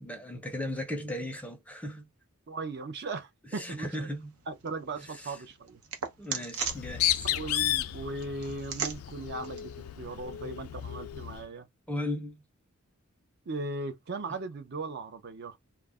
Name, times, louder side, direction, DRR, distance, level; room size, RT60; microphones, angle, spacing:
voice 1, 0.0-2.0 3.5-4.3 5.1-5.4 6.2-7.3 11.9-12.4, left 1 dB, 5° left, 0.5 m, -36 dB
voice 2, 2.5-4.1 4.5-5.8 7.3-9.7 10.0-11.7 13.5-15.6, right 3 dB, 50° right, 0.5 m, -38 dB
sound 1, 4.1-10.9, right 6 dB, 80° right, 0.8 m, -41 dB
Bird, 6.6-11.5, left 13 dB, 75° left, 0.3 m, -33 dB
2.3 x 2.0 x 3.3 m
head